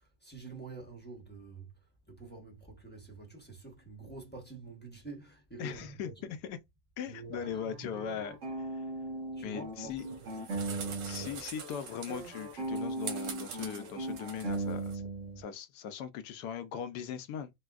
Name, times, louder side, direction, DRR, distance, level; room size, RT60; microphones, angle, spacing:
voice 1, 0.0-6.2 7.1-8.2 9.3-11.4, right 3 dB, 10° left, 0.6 m, -48 dB
voice 2, 5.6-6.6 7.0-8.8 9.4-10.0 10.4-10.5 11.0-15.0 15.4-17.5, left 8 dB, 75° left, 1.1 m, -40 dB
sound 1, 7.4-11.3 11.6-15.4, right 2 dB, 50° right, 1.3 m, -38 dB
sound 2, 10.0-15.0, right 7 dB, 90° right, 1.5 m, -45 dB
4.2 x 2.2 x 2.3 m
omnidirectional pair, 1.8 m